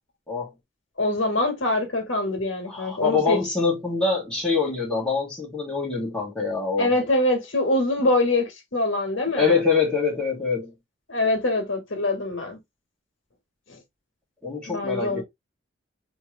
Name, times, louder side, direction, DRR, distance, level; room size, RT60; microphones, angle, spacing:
voice 1, 1.0-3.4 6.8-9.6 11.1-12.6 14.7-15.2, left 2 dB, 80° left, 1.4 m, -24 dB
voice 2, 2.7-6.9 9.3-10.7 14.4-15.2, left 4 dB, 5° left, 1.9 m, -24 dB
3.4 x 3.1 x 3.0 m
head